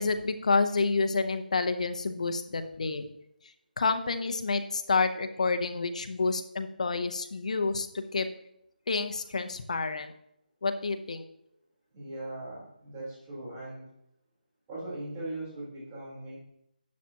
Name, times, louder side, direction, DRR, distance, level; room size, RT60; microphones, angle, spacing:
voice 1, 0.0-3.1 3.8-8.3 8.9-10.1 10.6-11.2, left 4 dB, 45° left, 8 dB, 0.8 m, -29 dB
voice 2, 11.9-13.9 14.7-16.4, right 1 dB, 15° right, -7 dB, 3.7 m, -39 dB
11.5 x 7.4 x 2.9 m, 0.78 s
figure-of-eight pair, 170°, 5 cm